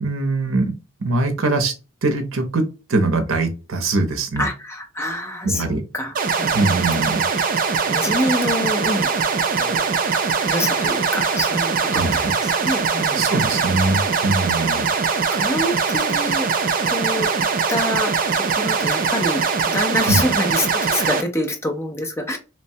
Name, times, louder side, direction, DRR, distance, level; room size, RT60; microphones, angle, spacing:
voice 1, 0.0-0.7 1.0-1.7 2.0-4.5 5.4-5.8 6.5-7.2 11.9-12.1 13.1-14.9 20.1-20.2, right 2 dB, 75° right, 7 dB, 0.7 m, -22 dB
voice 2, 4.4-6.9 7.7-9.1 9.6-9.8 10.5-13.7 14.7-14.9 15.3-16.5 16.9-17.3 17.7-22.4, left 1 dB, 15° left, 3 dB, 0.5 m, -26 dB
sound 1, 6.1-21.2, right 5 dB, 40° right, 0.4 m, -21 dB
3.1 x 2.2 x 2.6 m, 0.31 s
head